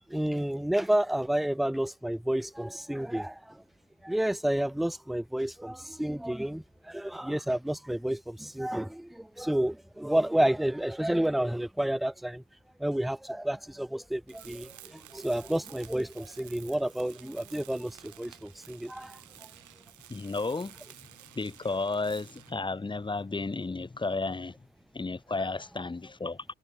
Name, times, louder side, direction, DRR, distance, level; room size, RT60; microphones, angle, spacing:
voice 1, 0.1-3.6 4.0-12.4 12.8-19.2, right 1 dB, ahead, 0.4 m, -30 dB
Tools, 14.3-22.7, right 12 dB, 75° right, 7.7 m, -52 dB
voice 2, 20.1-20.7 21.3-24.5 24.9-26.4, left 3 dB, 15° left, 0.8 m, -33 dB
cardioid pair, 90°, 30 cm